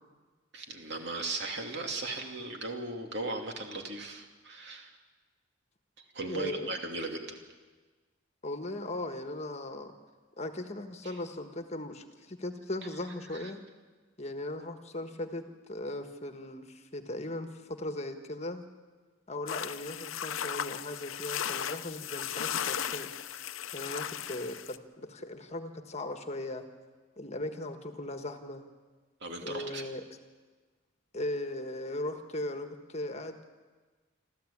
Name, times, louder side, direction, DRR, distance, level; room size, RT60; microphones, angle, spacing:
voice 1, 0.5-5.0 6.0-7.4 11.0-11.1 13.3-13.5 29.2-30.0, right 2 dB, 60° right, 3 dB, 2.7 m, -37 dB
voice 2, 6.3-6.8 8.4-9.9 10.4-13.6 14.2-18.6 19.3-23.1 23.7-26.7 27.2-28.6 29.4-30.0 31.1-33.4, left 1 dB, 35° left, 7 dB, 1.4 m, -38 dB
sound 1, 19.5-24.8, left 9 dB, 85° left, 0.7 m, -36 dB
26.5 x 14.0 x 8.7 m, 1.4 s
head